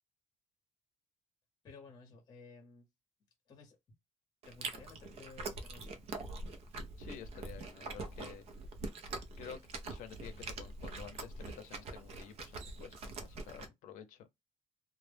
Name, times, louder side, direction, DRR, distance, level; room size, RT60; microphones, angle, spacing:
voice 1, 1.6-2.9 3.5-3.8 4.4-6.0, left 4 dB, 30° left, 0.7 m, -55 dB
Chewing mastication, 4.4-13.7, right 3 dB, 50° right, 0.5 m, -44 dB
voice 2, 7.0-8.4 9.4-9.6 9.9-14.3, left 8 dB, 70° left, 0.6 m, -50 dB
2.0 x 2.0 x 3.2 m
cardioid pair, 160°, 14 cm